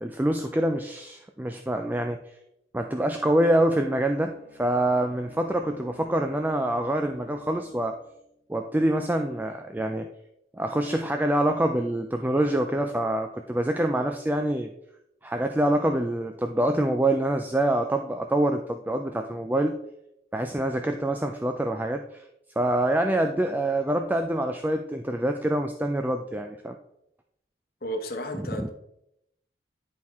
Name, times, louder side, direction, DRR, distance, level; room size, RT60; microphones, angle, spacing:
voice 1, 0.0-2.2 2.7-4.3 4.6-7.9 8.5-10.1 10.5-14.7 15.2-19.7 20.3-22.2 22.6-26.8 28.6-28.7, right 1 dB, 10° right, 5 dB, 0.3 m, -25 dB
Bowed string instrument, 3.8-8.4, left 2 dB, 75° right, 2.0 m, -51 dB
voice 2, 27.8-28.7, equal, 55° left, 5 dB, 1.0 m, -33 dB
10.5 x 4.4 x 3.5 m, 0.79 s
head